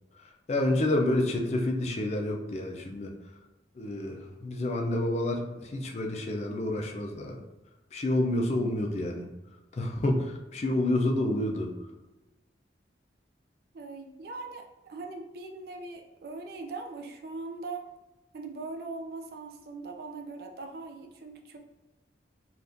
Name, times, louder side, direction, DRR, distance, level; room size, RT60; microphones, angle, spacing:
voice 1, 0.5-3.1 3.8-7.4 7.9-9.3 9.7-11.7, left 1 dB, 35° left, 2 dB, 0.4 m, -29 dB
voice 2, 13.7-17.9 18.3-21.6, right 3 dB, 55° right, 4 dB, 0.4 m, -40 dB
3.4 x 2.4 x 2.6 m, 1.0 s
head